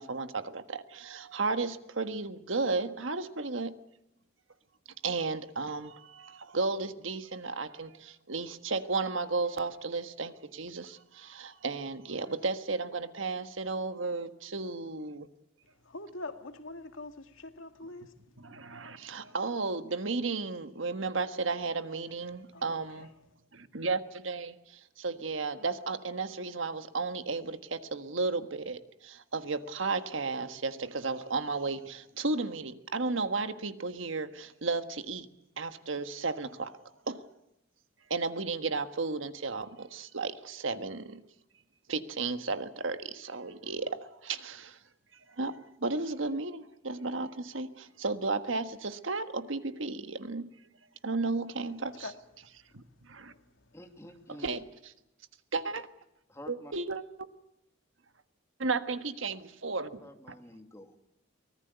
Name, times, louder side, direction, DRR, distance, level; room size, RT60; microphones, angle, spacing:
voice 1, 0.0-3.7 5.0-15.3 18.4-23.1 23.5-35.3 35.6-36.8 37.1-37.2 38.1-41.2 41.9-44.8 45.1-50.5 51.0-52.1 52.7-53.3 54.4-54.6 55.5-55.9 56.5-57.0 58.6-60.3, right 3 dB, 75° right, 1.5 m, -34 dB
voice 2, 15.6-18.5 22.5-23.3 52.0-53.8, left 2 dB, 75° left, 2.0 m, -46 dB
voice 3, 53.7-54.6 56.3-56.7 60.0-61.0, left 1 dB, 15° left, 2.5 m, -49 dB
24.5 x 19.0 x 8.1 m
head